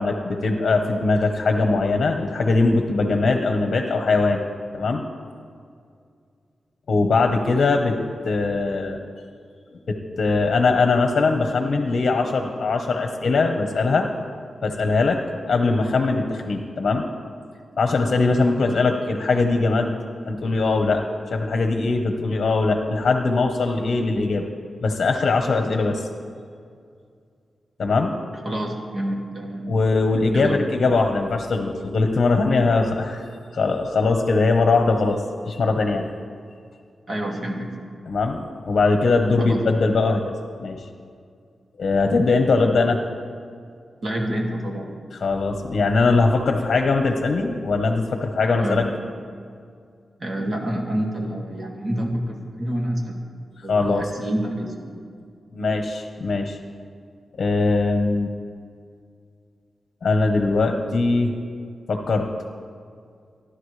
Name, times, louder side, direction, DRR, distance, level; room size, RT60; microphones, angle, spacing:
voice 1, 0.0-4.4 4.7-5.0 6.9-7.9 8.2-9.0 9.9-14.1 14.6-15.2 15.5-17.0 17.8-19.9 20.2-21.0 21.3-24.4 24.8-26.1 27.8-28.1 29.6-33.2 33.5-35.2 35.5-36.1 38.1-40.3 40.6-40.8 41.8-43.0 45.1-48.8 53.7-54.1 55.5-56.6 57.4-58.3 60.0-61.3 61.9-62.3, left 3 dB, 55° left, 4 dB, 1.1 m, -21 dB
voice 2, 28.4-29.7 30.3-30.6 37.1-37.7 39.4-39.6 44.0-44.9 48.6-48.9 50.2-53.2 53.6-54.7, right 1 dB, 35° right, -1 dB, 2.3 m, -27 dB
28.0 x 11.5 x 3.3 m, 2.2 s
wide cardioid pair, 160°, 0 cm